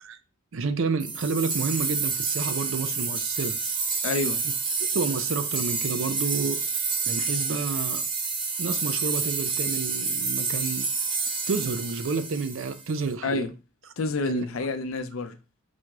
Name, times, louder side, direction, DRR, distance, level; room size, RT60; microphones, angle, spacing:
voice 1, 0.5-3.6 4.9-6.6 7.1-8.0 8.6-10.9 11.5-13.4 14.3-14.5, right 4 dB, 70° right, 0.5 m, -30 dB
sound 1, 1.0-13.0, right 4 dB, 25° right, 0.6 m, -29 dB
voice 2, 4.0-4.4 13.2-13.5 14.0-15.4, left 3 dB, 85° left, 0.6 m, -28 dB
4.1 x 2.4 x 4.6 m
head